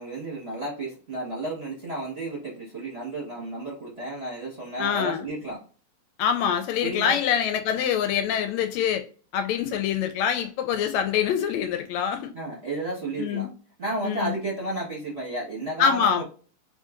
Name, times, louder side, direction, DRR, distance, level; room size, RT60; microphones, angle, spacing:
voice 1, 0.0-5.6 6.8-7.2 12.3-13.5 13.8-16.2, right 2 dB, 30° right, 1.1 m, -32 dB
voice 2, 4.8-5.2 6.2-9.0 9.3-12.3 13.2-13.5 14.0-14.3 15.8-16.2, left 8 dB, 80° left, 1.7 m, -25 dB
3.7 x 3.7 x 2.5 m
omnidirectional pair, 3.3 m